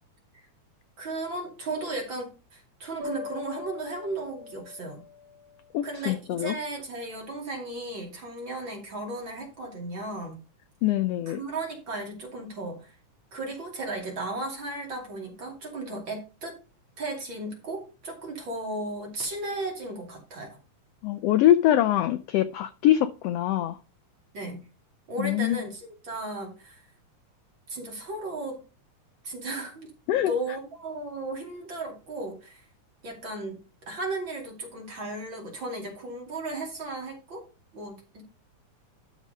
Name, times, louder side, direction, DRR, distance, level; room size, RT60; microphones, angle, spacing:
voice 1, 1.0-5.0 5.8-10.4 11.3-12.9 13.3-16.6 17.0-20.6 24.3-24.7 25.1-26.8 27.7-28.6 29.2-29.9 30.1-32.6 33.0-33.6 33.9-37.4 37.7-38.2, right 2 dB, 40° right, 0 dB, 3.3 m, -35 dB
sound 1, 3.0-6.1, left 5 dB, 70° right, 3.6 m, -41 dB
voice 2, 5.7-6.5 10.8-11.4 21.0-23.8 25.2-25.6 30.1-30.3, left 12 dB, 85° left, 11 dB, 1.4 m, -23 dB
12.0 x 4.9 x 5.2 m, 0.32 s
omnidirectional pair, 3.5 m